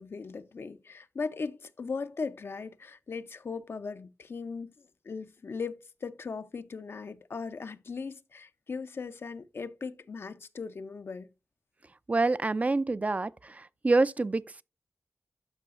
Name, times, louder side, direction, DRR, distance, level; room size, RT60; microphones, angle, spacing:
voice 1, 0.0-11.3, left 4 dB, 70° left, 0.6 m, -38 dB
voice 2, 12.1-14.6, right 3 dB, 35° right, 0.3 m, -27 dB
12.5 x 4.8 x 2.4 m
cardioid pair, 55°, 4 cm